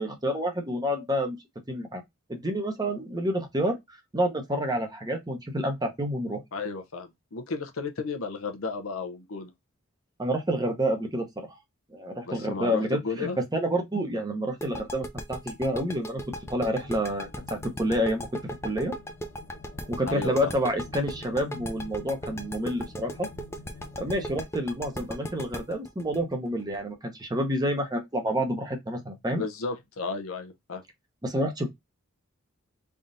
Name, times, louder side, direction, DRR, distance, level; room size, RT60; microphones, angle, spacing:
voice 1, 0.0-1.4 1.7-2.0 2.3-3.8 4.1-6.4 10.2-11.6 11.9-16.2 16.5-18.3 18.6-18.9 19.9-23.3 24.0-29.4 31.2-31.7, equal, 20° right, 0.9 m, -28 dB
voice 2, 6.5-9.5 12.3-13.4 20.0-20.5 29.3-30.8, left 4 dB, 80° left, 0.8 m, -33 dB
sound 1, 14.6-27.3, equal, 15° left, 0.5 m, -37 dB
sound 2, 16.2-24.4, left 4 dB, 55° left, 1.1 m, -48 dB
3.9 x 3.6 x 2.6 m
head